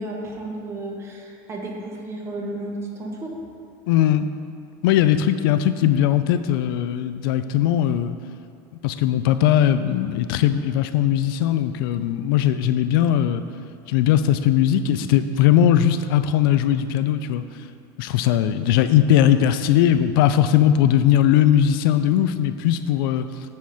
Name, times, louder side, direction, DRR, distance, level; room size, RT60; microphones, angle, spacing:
voice 1, 0.0-3.4, right 1 dB, 25° right, 0 dB, 1.1 m, -33 dB
voice 2, 3.9-4.3 4.8-8.2 8.8-13.4 13.9-17.4 18.0-23.3, left 10 dB, 90° left, 11 dB, 0.4 m, -19 dB
9.4 x 4.3 x 4.9 m, 2.3 s
cardioid pair, 155°, 11 cm